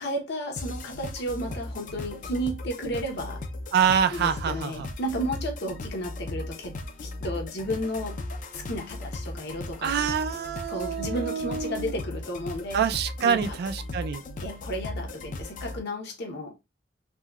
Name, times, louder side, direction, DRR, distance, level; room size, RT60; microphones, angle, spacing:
voice 1, 0.0-3.4 4.1-8.2 8.5-10.1 10.7-12.8 13.2-13.5 14.4-16.5, equal, 60° left, 0.8 m, -33 dB
sound 1, 0.6-15.8, left 2 dB, 45° left, 0.4 m, -37 dB
voice 2, 3.7-4.9 9.8-11.9 12.7-14.2, right 7 dB, 55° right, 0.3 m, -26 dB
3.6 x 2.2 x 2.2 m
head